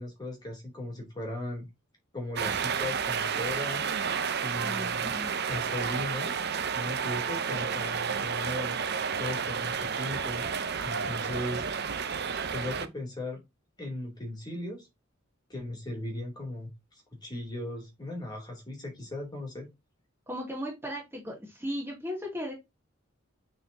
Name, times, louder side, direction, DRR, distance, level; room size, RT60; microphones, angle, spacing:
voice 1, 0.0-1.7 2.1-3.9 4.4-5.2 5.4-6.3 6.7-8.8 9.2-10.4 10.8-11.6 12.5-13.4 13.8-14.9 15.5-19.7, left 1 dB, 20° left, 3.2 m, -37 dB
sound 1, 2.4-12.9, right 6 dB, 50° right, 0.8 m, -31 dB
voice 2, 4.6-5.4 20.3-22.5, equal, 10° right, 2.7 m, -36 dB
8.7 x 4.2 x 2.8 m
head